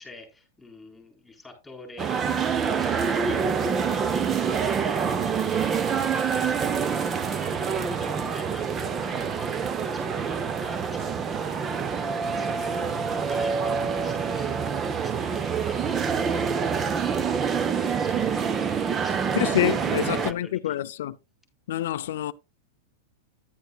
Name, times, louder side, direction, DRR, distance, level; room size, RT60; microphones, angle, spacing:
voice 1, 0.0-5.8 6.1-20.8, left 2 dB, 5° left, 4.1 m, -45 dB
sound 1, 2.0-20.3, right 6 dB, 20° right, 0.7 m, -26 dB
sound 2, 4.8-16.9, right 6 dB, 40° right, 2.2 m, -46 dB
voice 2, 19.3-21.2 21.7-22.3, left 13 dB, 75° left, 0.4 m, -27 dB
10.5 x 10.0 x 2.4 m
supercardioid pair, 145°, 0 cm